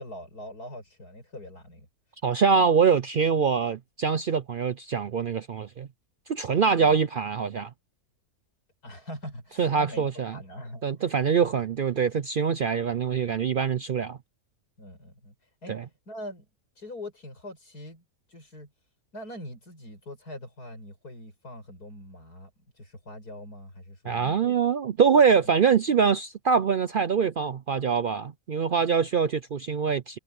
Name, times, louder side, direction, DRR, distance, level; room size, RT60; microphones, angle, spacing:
voice 1, 0.0-1.9 2.5-2.8 6.8-7.0 8.8-10.9 11.4-11.5 14.8-15.3 15.6-15.8 16.1-16.5 16.8-18.0 18.3-18.7 19.1-24.6 25.4-25.5, left 1 dB, 85° left, 7.7 m, -42 dB
voice 2, 2.2-5.9 6.3-7.7 9.6-10.4 10.8-14.2 15.7-15.8 24.0-30.2, right 6 dB, 65° right, 0.5 m, -24 dB
omnidirectional pair, 1.6 m